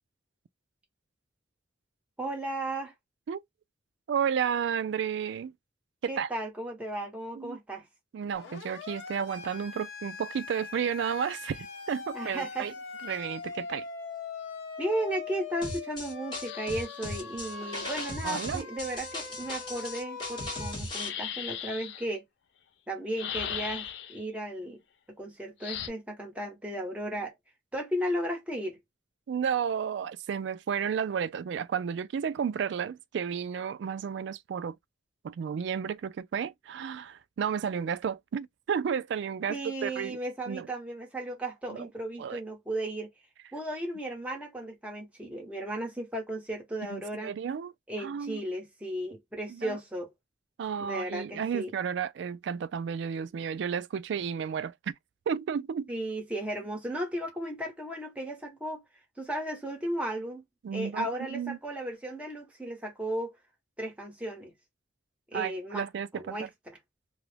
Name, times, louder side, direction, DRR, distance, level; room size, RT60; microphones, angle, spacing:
voice 1, 2.2-2.9 6.1-7.8 12.1-12.7 14.8-22.2 22.9-24.8 25.1-27.3 27.7-28.8 39.5-43.1 43.5-47.3 47.9-50.1 50.8-51.7 55.9-58.8 59.2-60.4 60.7-63.3 63.8-64.5 65.3-65.9 66.1-66.8, right 1 dB, 5° right, 0.9 m, -35 dB
voice 2, 4.1-5.5 6.0-6.3 7.4-7.6 8.1-12.7 13.0-13.9 18.2-18.7 29.3-34.8 35.2-40.2 40.5-40.7 41.7-41.9 42.2-42.4 46.9-47.7 48.0-48.4 49.5-49.8 50.6-54.9 55.3-55.9 60.6-61.6 65.3-66.5, right 7 dB, 70° right, 0.3 m, -32 dB
Siren, 8.3-20.7, left 5 dB, 85° left, 0.9 m, -42 dB
sound 1, 15.6-21.1, left 1 dB, 25° left, 0.9 m, -38 dB
sound 2, 16.4-18.2 20.8-22.1 23.1-24.2 25.6-25.9, left 9 dB, 65° left, 0.4 m, -38 dB
2.4 x 2.0 x 3.2 m
head